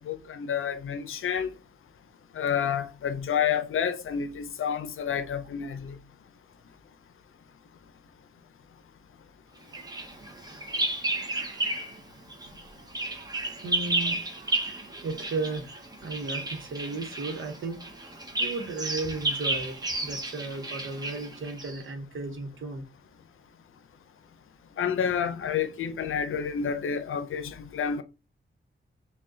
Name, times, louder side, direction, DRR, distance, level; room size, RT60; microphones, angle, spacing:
voice 1, 0.0-1.5 2.3-5.9 24.8-28.0, left 7 dB, 80° left, 0.6 m, -29 dB
Bird vocalization bird call bird song, 9.7-12.0 12.3-21.8, right 2 dB, 20° right, 0.7 m, -32 dB
voice 2, 13.4-14.2 14.5-17.8 18.4-22.8, right 3 dB, 75° right, 1.0 m, -35 dB
6.0 x 2.3 x 2.7 m
wide cardioid pair, 160°, 21 cm